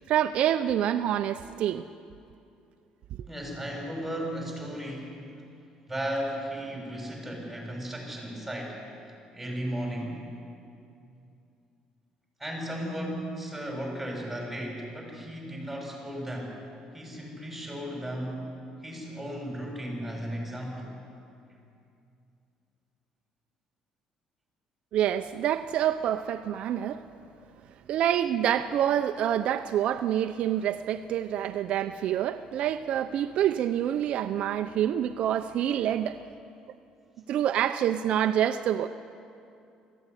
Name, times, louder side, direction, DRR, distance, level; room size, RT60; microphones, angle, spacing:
voice 1, 0.0-1.8 24.9-27.0 27.9-36.2 37.3-38.9, right 10 dB, 65° right, 9 dB, 0.6 m, -27 dB
voice 2, 3.3-5.2 5.9-10.2 12.4-16.6 16.9-18.5 18.8-20.9, equal, 5° right, 0 dB, 6.4 m, -35 dB
19.0 x 15.0 x 9.8 m, 2.5 s
cardioid pair, 115°, 2 cm